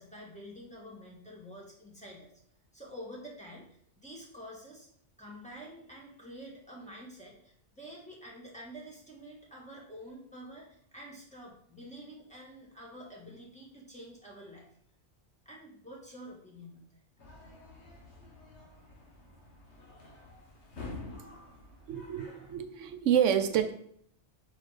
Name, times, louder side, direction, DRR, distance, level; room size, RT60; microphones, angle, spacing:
voice 1, 0.0-2.3 2.7-4.9 5.2-14.7 15.4-17.0, equal, 5° left, -4 dB, 1.5 m, -48 dB
sound 1, 17.2-22.5, left 3 dB, 65° left, 1.6 m, -48 dB
voice 2, 21.9-23.7, right 9 dB, 85° right, 7 dB, 0.9 m, -28 dB
5.1 x 4.1 x 4.8 m, 0.64 s
omnidirectional pair, 1.2 m